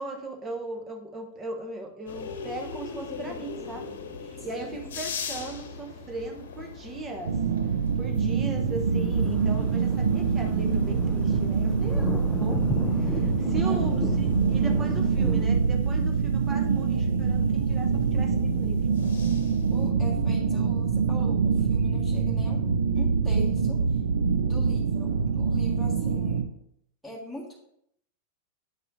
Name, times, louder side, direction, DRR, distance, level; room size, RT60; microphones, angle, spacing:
voice 1, 0.0-3.9 4.2-7.4 8.0-12.6 13.0-18.9, right 2 dB, 20° right, 2 dB, 1.0 m, -38 dB
sound 1, 2.1-19.9, left 5 dB, 60° left, 1.0 m, -43 dB
voice 2, 4.4-4.9 13.6-13.8 19.7-22.7 22.9-24.0 24.4-26.4 27.0-27.6, equal, 5° right, -5 dB, 1.7 m, -42 dB
sound 2, 7.2-26.5, right 5 dB, 65° right, 0.6 m, -25 dB
Thunder, 8.6-15.5, left 4 dB, 15° left, 0.4 m, -35 dB
9.4 x 5.4 x 2.6 m, 0.72 s
figure-of-eight pair, 90°, 0 cm